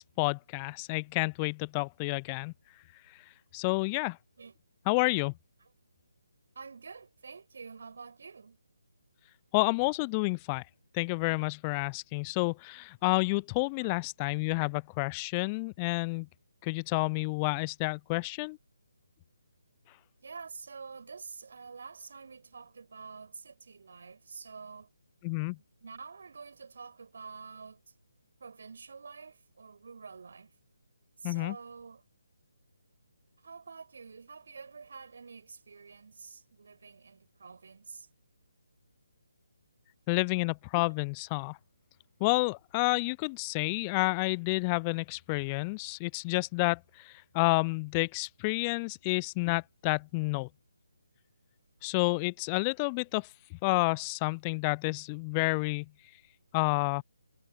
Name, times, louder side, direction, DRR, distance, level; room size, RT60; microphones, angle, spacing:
voice 1, 0.0-2.5 3.5-4.2 4.9-5.3 9.5-10.6 10.9-16.3 16.6-18.6 25.2-25.6 31.2-31.6 40.1-41.6 42.2-50.5 51.8-55.9 56.5-57.0, left 29 dB, 20° left, 0.4 m, -30 dB
voice 2, 6.5-8.6 13.8-14.0 20.2-24.9 25.5-27.8 28.4-30.5 31.2-32.0 33.4-38.1, right 5 dB, 55° right, 7.9 m, -47 dB
figure-of-eight pair, 145°, 0 cm